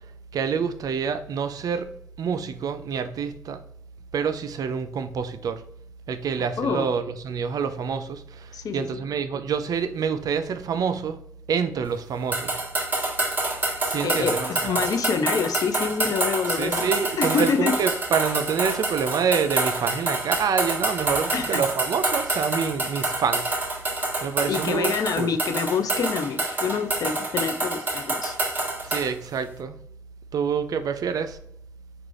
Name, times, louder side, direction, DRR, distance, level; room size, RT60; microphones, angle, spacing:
voice 1, 0.3-3.6 4.1-5.6 6.1-11.2 11.5-12.6 13.9-14.8 16.5-23.5 24.2-25.3 28.8-29.8 30.3-31.4, right 6 dB, 65° right, 0.4 m, -27 dB
voice 2, 8.5-9.0 14.0-14.4 14.6-16.9 17.2-17.8 21.3-21.6 24.5-28.4, left 5 dB, 65° left, 0.5 m, -26 dB
sound 1, 12.3-29.1, right 2 dB, 30° right, 0.9 m, -27 dB
3.7 x 2.3 x 3.2 m
cardioid pair, 75°, 7 cm